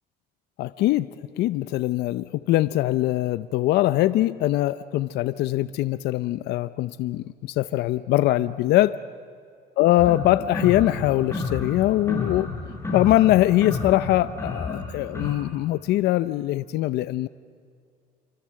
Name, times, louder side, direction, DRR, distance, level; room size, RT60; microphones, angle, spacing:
voice 1, 0.6-1.1 1.4-9.0 9.8-12.5 12.9-17.3, left 15 dB, 80° left, 14 dB, 0.7 m, -22 dB
sound 1, 10.0-15.3, left 3 dB, 15° left, 6.6 m, -31 dB
28.0 x 24.5 x 7.6 m, 2.2 s
cardioid pair, 110°, 17 cm